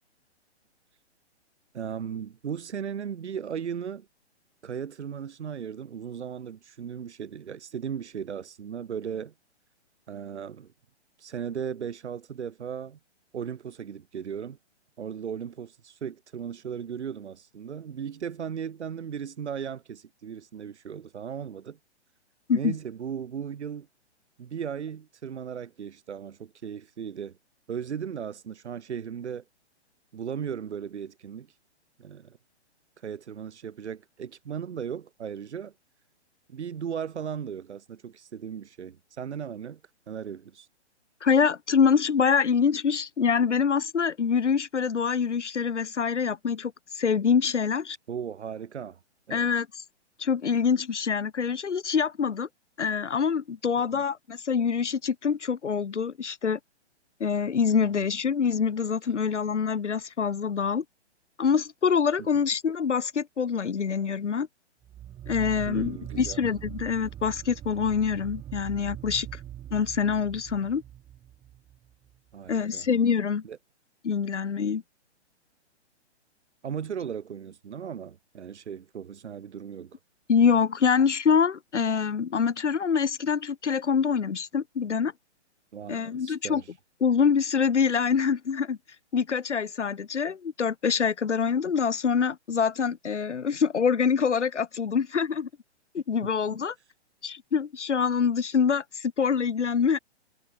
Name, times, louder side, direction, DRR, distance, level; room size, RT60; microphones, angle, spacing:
voice 1, 1.7-4.1 4.6-9.3 10.1-10.7 11.2-13.0 13.3-14.6 15.0-21.8 22.5-23.9 24.4-27.4 27.7-29.4 30.1-31.5 32.0-32.4 33.0-35.7 36.5-39.8 40.1-40.7 48.1-49.0 49.3-49.5 53.8-54.0 57.8-58.2 62.2-62.4 65.6-66.4 72.3-72.9 73.4-73.6 76.6-80.0 85.7-86.8 96.2-96.6, right 7 dB, 75° right, 1.7 m, -37 dB
voice 2, 41.2-48.0 49.3-49.8 50.2-52.5 52.8-56.6 57.2-60.8 61.4-64.5 65.3-69.4 69.7-70.8 72.5-73.4 74.0-74.8 80.3-85.1 85.9-86.6 87.0-88.8 89.1-95.5 95.9-96.7 97.2-100.0, left 6 dB, 85° left, 1.7 m, -25 dB
sound 1, 64.8-72.2, right 11 dB, 15° right, 1.3 m, -41 dB
hypercardioid pair, 140°, 34 cm